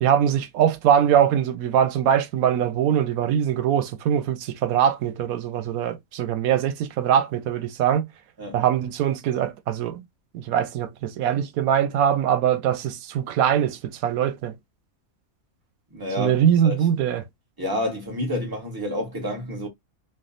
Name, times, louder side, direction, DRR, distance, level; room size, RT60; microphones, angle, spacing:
voice 1, 0.0-8.1 8.5-10.0 10.3-14.5 16.2-17.3, right 9 dB, 90° right, 1.1 m, -22 dB
voice 2, 15.9-16.8 17.6-19.7, left 1 dB, 15° right, 1.2 m, -29 dB
3.4 x 2.4 x 2.4 m
omnidirectional pair, 1.5 m